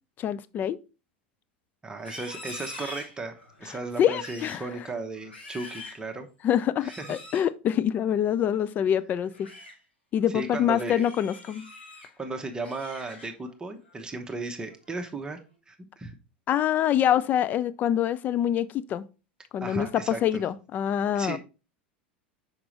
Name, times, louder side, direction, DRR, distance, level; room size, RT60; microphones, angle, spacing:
voice 1, 0.2-0.8 3.7-4.6 6.4-9.5 10.1-11.7 16.5-19.1 19.5-21.4, left 10 dB, 30° left, 0.4 m, -25 dB
voice 2, 1.8-6.3 6.8-7.1 10.3-11.0 12.2-15.4 15.7-16.1 19.6-20.2 21.1-21.4, right 3 dB, 15° right, 0.9 m, -35 dB
Livestock farm animals working animals, 1.9-3.6 4.1-4.7 5.1-6.1 6.8-7.5 9.2-9.7 10.2-10.5 10.9-12.1 12.5-13.5 13.9-14.2 14.7-15.1, left 2 dB, 85° left, 2.3 m, -44 dB
5.9 x 5.1 x 3.1 m
figure-of-eight pair, 85°, 6 cm